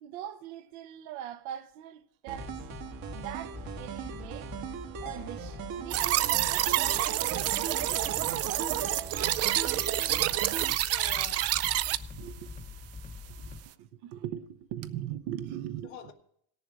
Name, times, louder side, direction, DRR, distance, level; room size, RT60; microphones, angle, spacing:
voice 1, 0.0-2.5 3.1-4.5 5.0-8.1 10.0-10.5 12.1-12.6 13.3-16.1, right 11 dB, 70° right, 1.1 m, -41 dB
sound 1, 2.3-13.6, left 4 dB, 20° left, 0.9 m, -44 dB
sound 2, 2.3-10.7, right 8 dB, 55° right, 1.4 m, -40 dB
sound 3, 5.9-12.0, right 14 dB, 40° right, 0.5 m, -28 dB
voice 2, 10.9-12.1 15.8-16.1, left 9 dB, 80° left, 1.9 m, -48 dB
17.5 x 7.0 x 4.7 m
supercardioid pair, 110°, 40 cm